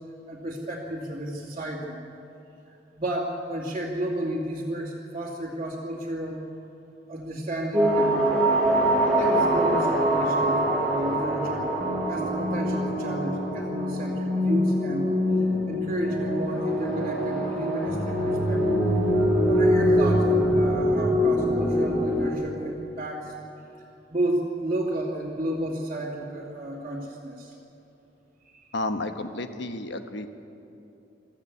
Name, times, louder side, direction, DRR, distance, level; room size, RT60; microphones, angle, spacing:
voice 1, 0.3-2.0 2.7-6.4 7.1-8.4 9.0-11.7 12.1-15.1 15.4-18.8 19.4-23.3 24.1-27.5 28.4-28.7, right 1 dB, 30° right, -7 dB, 2.5 m, -32 dB
sound 1, 7.7-22.3, equal, 5° left, 5.5 m, -24 dB
voice 2, 28.7-30.3, left 2 dB, 70° left, 8 dB, 1.2 m, -31 dB
23.0 x 14.0 x 8.5 m, 2.8 s
head